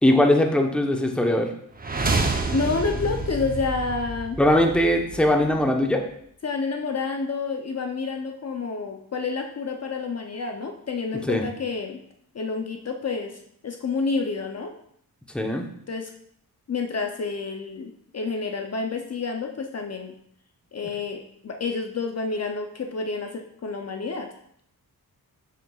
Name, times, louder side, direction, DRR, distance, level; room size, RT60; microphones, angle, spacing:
voice 1, 0.0-1.5 4.4-6.0 11.3-11.4 15.3-15.6, left 1 dB, 5° left, 2 dB, 0.9 m, -20 dB
sound 1, 1.8-5.7, right 3 dB, 25° right, 0.7 m, -28 dB
voice 2, 2.5-4.4 6.4-12.0 12.3-14.7 15.9-16.1 16.7-20.1 20.7-24.3, left 4 dB, 45° left, 4 dB, 0.6 m, -29 dB
7.3 x 6.8 x 2.4 m, 0.70 s
cardioid pair, 75°, 36 cm